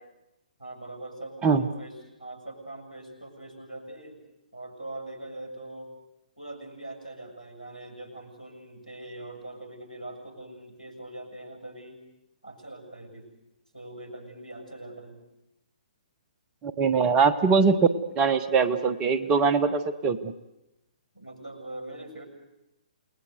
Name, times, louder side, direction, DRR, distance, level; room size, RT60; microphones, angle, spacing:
voice 1, 0.6-4.2 4.5-5.9 6.4-12.0 12.4-13.3 13.7-15.2 21.1-22.3, right 1 dB, 90° left, 4 dB, 7.2 m, -42 dB
voice 2, 16.6-17.8 18.2-20.3, right 5 dB, 20° right, 13 dB, 1.2 m, -22 dB
28.5 x 20.0 x 8.1 m, 0.90 s
figure-of-eight pair, 125°, 4 cm